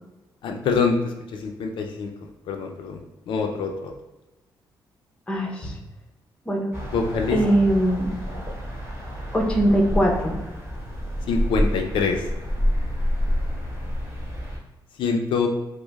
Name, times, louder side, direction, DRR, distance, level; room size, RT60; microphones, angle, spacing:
voice 1, 0.4-2.1 2.5-3.0 3.3-3.9 6.9-7.4 11.3-12.2 15.0-15.5, left 5 dB, 75° left, 3 dB, 0.4 m, -25 dB
voice 2, 5.3-5.7 6.5-6.7 7.3-8.1 9.3-10.4, right 1 dB, 10° left, 0 dB, 0.7 m, -21 dB
sound 1, 6.7-14.6, equal, 30° right, 0.9 m, -28 dB
4.9 x 2.0 x 2.3 m, 1.1 s
cardioid pair, 105°, 8 cm